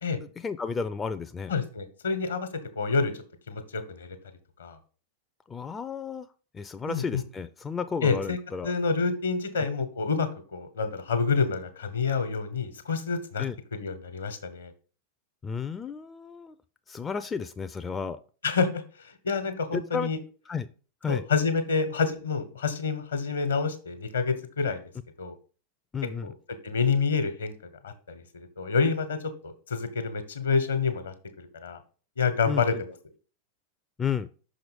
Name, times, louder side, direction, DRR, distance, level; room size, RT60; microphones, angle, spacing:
voice 1, 0.1-1.5 5.5-6.3 6.5-8.7 9.6-9.7 13.4-13.6 15.4-16.5 16.9-18.2 19.7-20.1 20.5-20.7 21.0-21.2 25.9-26.3 32.5-32.6 34.0-34.3, left 6 dB, 15° left, 10 dB, 0.4 m, -32 dB
voice 2, 1.5-2.5 2.8-3.1 3.5-4.2 4.6-4.8 6.9-7.2 8.0-8.4 8.6-13.4 13.7-14.7 18.4-18.8 19.2-20.2 21.1-24.8 25.2-25.3 26.2-26.3 26.6-27.5 27.8-29.2 29.4-31.8 32.2-32.9, left 5 dB, 70° left, 9 dB, 1.2 m, -28 dB
6.0 x 4.9 x 5.2 m, 0.39 s
figure-of-eight pair, 90°, 0 cm